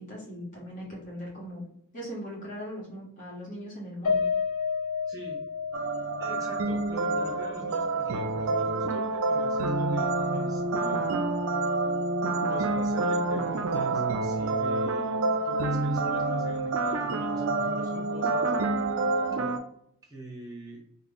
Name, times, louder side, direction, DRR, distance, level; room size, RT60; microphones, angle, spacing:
voice 1, 0.0-1.6 1.9-4.3, equal, 35° left, -5 dB, 1.3 m, -39 dB
Piano, 4.0-8.5 8.9-9.0 9.4-9.6, left 5 dB, 80° left, 0.5 m, -32 dB
voice 2, 5.1-5.4 6.2-11.1 12.5-18.5 19.3-19.6 20.0-20.8, right 1 dB, 15° right, -1 dB, 0.8 m, -43 dB
sound 1, 5.7-19.6, right 2 dB, 65° right, 0.4 m, -28 dB
3.5 x 2.2 x 3.5 m, 0.70 s
head